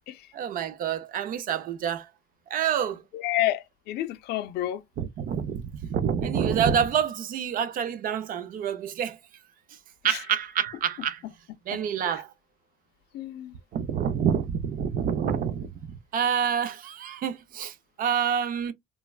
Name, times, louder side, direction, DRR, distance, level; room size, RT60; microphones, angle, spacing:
voice 1, 0.3-2.1 2.5-3.0 5.0-9.2 10.0-11.2 11.7-12.3 13.7-18.7, right 8 dB, 55° right, 0.5 m, -27 dB
voice 2, 3.1-4.8 10.1-10.2 13.1-13.5, left 14 dB, 75° left, 0.4 m, -29 dB
3.3 x 2.2 x 2.3 m
cardioid pair, 110°, 17 cm